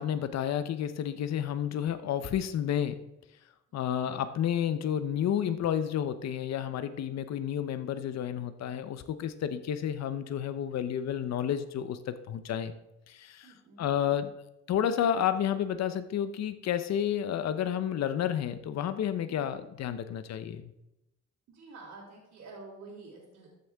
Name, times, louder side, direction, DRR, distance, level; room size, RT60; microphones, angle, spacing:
voice 1, 0.0-3.0 3.7-12.8 13.1-14.3 14.7-20.7, left 9 dB, 60° left, 11 dB, 0.7 m, -31 dB
voice 2, 3.7-4.2 13.4-13.9 19.3-19.6 21.5-23.5, right 3 dB, 70° right, -5 dB, 3.1 m, -49 dB
13.5 x 6.6 x 3.5 m, 0.90 s
cardioid pair, 90°, 30 cm